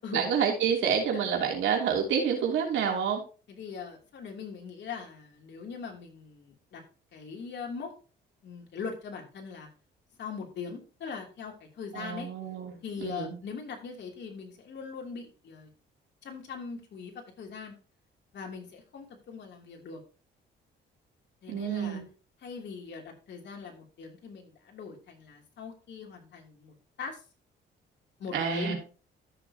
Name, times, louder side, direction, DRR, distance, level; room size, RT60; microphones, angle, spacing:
voice 1, 0.1-3.2 11.9-13.4 21.5-22.0 28.3-28.7, right 7 dB, 80° right, 1 dB, 3.0 m, -28 dB
voice 2, 3.5-6.8 7.1-7.9 8.4-9.7 10.2-12.3 12.8-15.7 16.2-17.7 18.3-20.0 21.4-22.0 22.4-27.2 28.2-28.7, left 5 dB, 65° left, 1 dB, 2.9 m, -41 dB
13.5 x 6.8 x 2.8 m, 0.36 s
cardioid pair, 90°, 20 cm